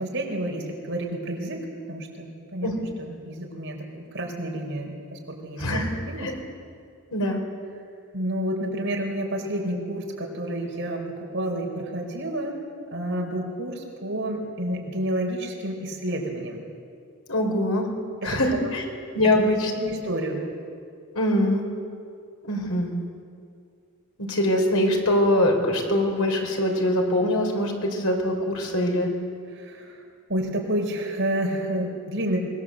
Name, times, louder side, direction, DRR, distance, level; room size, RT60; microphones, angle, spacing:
voice 1, 0.0-1.6 1.9-2.7 3.0-5.8 6.0-6.3 8.1-12.5 12.9-16.6 18.2-18.7 19.2-19.4 19.8-20.5 29.5-30.0 30.3-32.4, right 1 dB, 55° right, 1 dB, 4.6 m, -30 dB
voice 2, 5.6-5.9 6.2-6.3 7.1-7.4 17.3-17.8 18.2-18.8 19.1-19.7 21.1-21.6 22.4-22.9 24.2-29.1, left 1 dB, 75° left, 2 dB, 4.4 m, -23 dB
24.5 x 20.0 x 7.7 m, 2.3 s
head